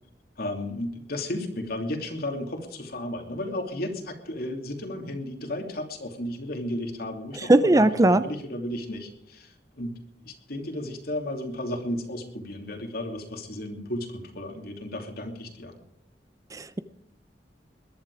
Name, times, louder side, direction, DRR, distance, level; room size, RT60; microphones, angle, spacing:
voice 1, 0.4-15.8, left 1 dB, 60° left, 4 dB, 3.0 m, -34 dB
voice 2, 7.5-8.2 16.5-16.8, right 2 dB, 20° right, 14 dB, 0.5 m, -19 dB
21.5 x 11.0 x 4.9 m, 0.77 s
head